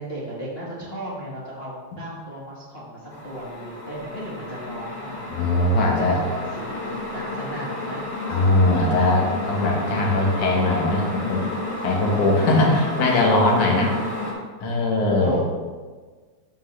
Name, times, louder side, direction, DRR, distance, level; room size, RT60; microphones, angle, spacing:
voice 1, 0.0-8.0 12.6-13.0 13.6-14.0 15.1-15.4, equal, 25° left, -7 dB, 1.4 m, -36 dB
sound 1, 3.1-14.3, left 2 dB, 40° left, 2.7 m, -31 dB
voice 2, 5.3-6.2 8.3-11.4 11.8-13.9 14.6-15.4, left 2 dB, 80° left, -1 dB, 3.0 m, -20 dB
14.0 x 5.5 x 3.4 m, 1.4 s
omnidirectional pair, 3.4 m